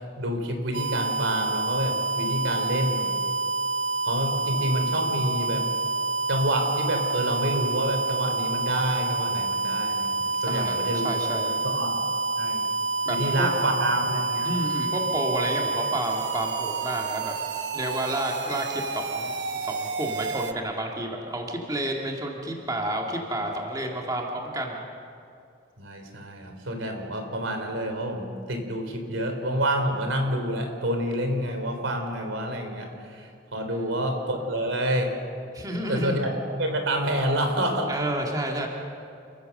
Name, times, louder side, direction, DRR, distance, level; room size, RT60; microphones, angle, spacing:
voice 1, 0.2-3.2 4.0-5.7 6.3-11.1 11.7-12.0 12.4-12.7 13.1-14.5 25.8-35.1 35.9-36.3 36.6-37.9, right 1 dB, 85° right, 5 dB, 3.4 m, -28 dB
sound 1, 0.7-20.5, right 3 dB, 60° right, 0.9 m, -28 dB
voice 2, 10.5-11.6 13.0-13.5 14.4-17.3 17.7-24.9 33.7-34.1 35.5-36.2 37.9-38.7, right 1 dB, 20° right, 0 dB, 2.1 m, -30 dB
29.0 x 15.0 x 6.7 m, 2.5 s
head